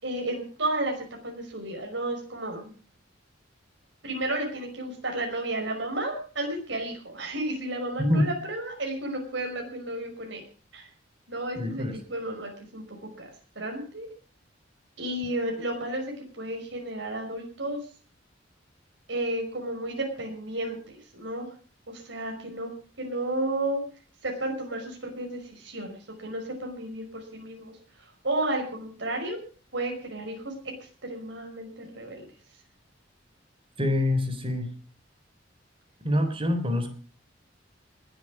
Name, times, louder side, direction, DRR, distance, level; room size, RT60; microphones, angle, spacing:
voice 1, 0.0-2.7 4.0-10.4 10.7-10.9 11.3-13.3 13.6-14.1 15.0-17.9 19.1-21.6 21.9-22.7 23.0-23.8 24.2-29.4 29.7-32.2, right 1 dB, 70° right, 1 dB, 5.4 m, -32 dB
voice 2, 11.6-11.9 33.8-34.7 36.0-36.9, left 1 dB, 30° right, 8 dB, 3.8 m, -25 dB
21.0 x 9.9 x 6.2 m, 0.41 s
head